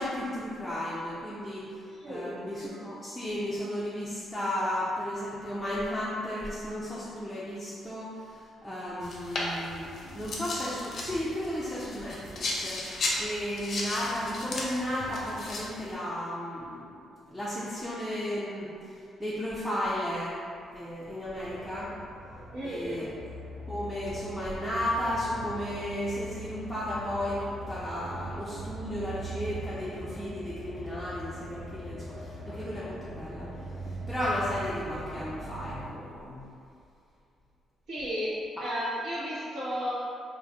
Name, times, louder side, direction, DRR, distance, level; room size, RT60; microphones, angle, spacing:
voice 1, 0.0-1.6 2.1-17.0 17.3-18.7 19.2-20.4 20.7-21.9 22.6-23.1 23.7-33.5 34.1-36.4, left 1 dB, 5° left, -10 dB, 0.5 m, -34 dB
voice 2, 1.9-2.4 22.5-23.0 37.9-38.3 38.6-39.9, equal, 70° right, -11 dB, 1.3 m, -33 dB
sound 1, 9.0-15.9, left 2 dB, 55° left, 0.5 m, -36 dB
sound 2, 21.3-35.9, right 1 dB, 50° right, 1.1 m, -41 dB
3.2 x 2.5 x 2.4 m, 2.4 s
cardioid pair, 90°, 0 cm